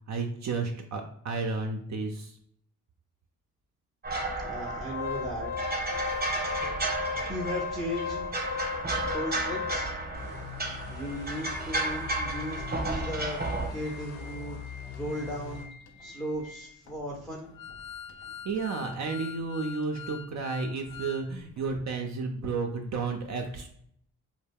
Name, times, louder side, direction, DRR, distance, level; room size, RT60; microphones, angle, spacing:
voice 1, 0.1-2.3 6.1-6.3 16.0-16.2 18.4-23.7, right 4 dB, 50° right, 3 dB, 0.5 m, -32 dB
sound 1, 4.0-13.7, right 2 dB, 25° right, 0.9 m, -33 dB
voice 2, 4.4-5.5 7.3-8.3 9.1-9.9 10.9-13.4 13.7-14.6 14.9-15.7 16.0-17.5, equal, ahead, -1 dB, 0.5 m, -36 dB
Organ, 4.6-10.2 10.7-10.8 11.0-11.2 11.7-21.3 21.6-21.7, left 7 dB, 85° left, 0.5 m, -39 dB
sound 2, 10.1-15.7, left 6 dB, 60° left, 0.8 m, -42 dB
2.2 x 2.1 x 3.4 m, 0.66 s
supercardioid pair, 60°, 36 cm